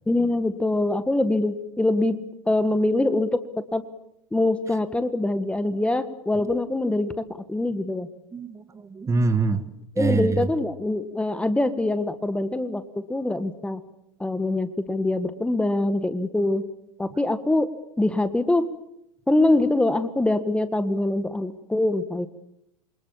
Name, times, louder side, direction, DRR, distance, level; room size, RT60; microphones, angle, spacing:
voice 1, 0.1-3.8 4.3-8.1 10.0-13.8 14.2-16.7 17.0-17.7 18.0-18.7 19.3-22.3, left 2 dB, 5° left, 12 dB, 1.7 m, -24 dB
voice 2, 8.3-10.5, right 4 dB, 15° right, 12 dB, 1.8 m, -25 dB
28.0 x 25.0 x 7.3 m, 0.80 s
hypercardioid pair, 90°, 17 cm